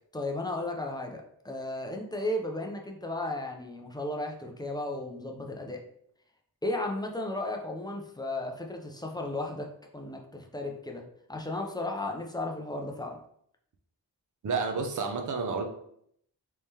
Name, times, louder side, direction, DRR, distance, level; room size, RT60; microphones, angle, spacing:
voice 1, 0.1-5.8 6.6-11.0 11.3-13.2, left 2 dB, 10° left, 1 dB, 0.3 m, -34 dB
voice 2, 14.4-15.6, right 4 dB, 50° right, 4 dB, 0.5 m, -30 dB
3.5 x 3.2 x 2.8 m, 0.69 s
wide cardioid pair, 175°, 41 cm